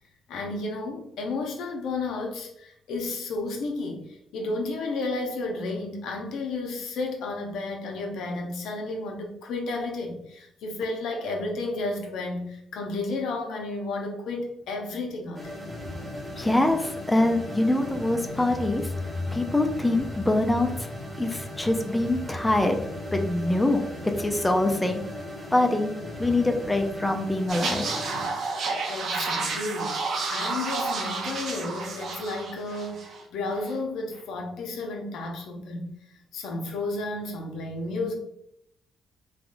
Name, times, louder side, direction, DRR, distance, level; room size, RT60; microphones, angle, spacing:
voice 1, 0.3-15.6 28.9-35.9 36.3-38.1, left 2 dB, 80° left, 2 dB, 0.6 m, -32 dB
sound 1, 15.3-28.3, left 1 dB, 10° right, 0.8 m, -36 dB
voice 2, 16.4-18.9 19.3-20.7 21.2-22.8 23.1-25.0 25.5-25.9 26.2-27.9, left 2 dB, 10° left, 5 dB, 0.4 m, -24 dB
sound 2, 27.5-33.2 33.5-33.7, right 4 dB, 65° right, 0.6 m, -31 dB
3.4 x 2.3 x 2.5 m, 0.76 s
cardioid pair, 90°, 0 cm